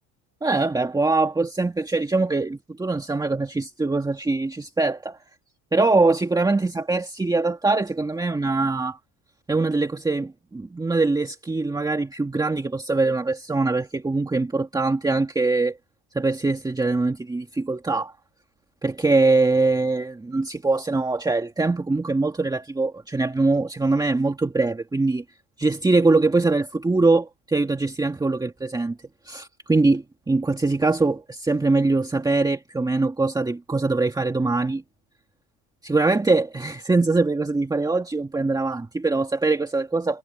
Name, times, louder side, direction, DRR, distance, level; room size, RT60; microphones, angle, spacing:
voice 1, 0.4-5.2 5.7-9.0 9.5-15.8 16.1-18.1 18.8-25.2 25.6-29.0 29.2-34.8 35.8-40.2, right 3 dB, 10° right, 1.9 m, -22 dB
cardioid pair, 140°, 42 cm